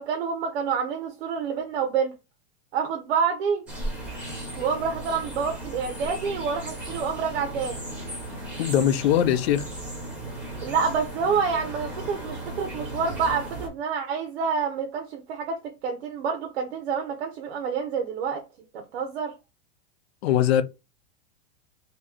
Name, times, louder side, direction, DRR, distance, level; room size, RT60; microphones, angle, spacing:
voice 1, 0.0-2.2 2.7-3.6 4.6-7.8 10.6-18.4 18.7-19.3, right 6 dB, 85° right, 0.8 m, -28 dB
sound 1, 3.7-13.7, right 1 dB, 5° right, 0.7 m, -36 dB
voice 2, 8.6-9.7 20.2-20.6, left 10 dB, 80° left, 0.6 m, -21 dB
3.0 x 2.7 x 3.6 m
supercardioid pair, 180°, 31 cm